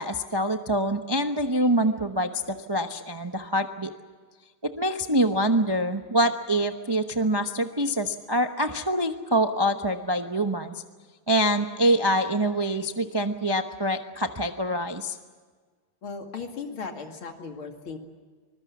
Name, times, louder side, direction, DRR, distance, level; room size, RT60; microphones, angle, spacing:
voice 1, 0.0-3.9 4.6-10.7 11.3-15.2, right 1 dB, 25° right, 6 dB, 0.5 m, -25 dB
voice 2, 16.0-18.0, left 5 dB, 80° left, 4 dB, 3.1 m, -37 dB
25.0 x 21.0 x 7.3 m, 1.5 s
omnidirectional pair, 2.3 m